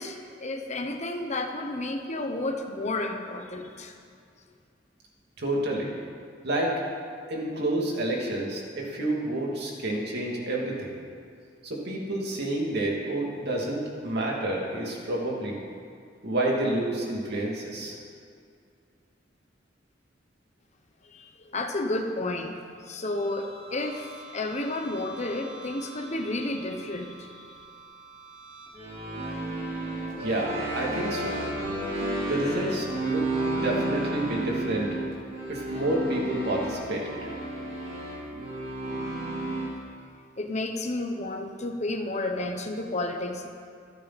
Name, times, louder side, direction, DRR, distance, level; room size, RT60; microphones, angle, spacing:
voice 1, 0.0-3.9 21.0-22.5 22.8-27.5 40.4-43.5, left 2 dB, 40° left, 4 dB, 1.1 m, -31 dB
voice 2, 5.4-5.9 6.4-6.8 7.3-10.9 11.6-15.6 16.2-18.0 30.2-31.4 32.2-34.9 35.5-37.3, right 1 dB, 60° right, -2 dB, 2.9 m, -29 dB
sound 1, 23.1-39.7, right 1 dB, 45° right, 4.8 m, -33 dB
26.5 x 9.1 x 4.3 m, 2.3 s
head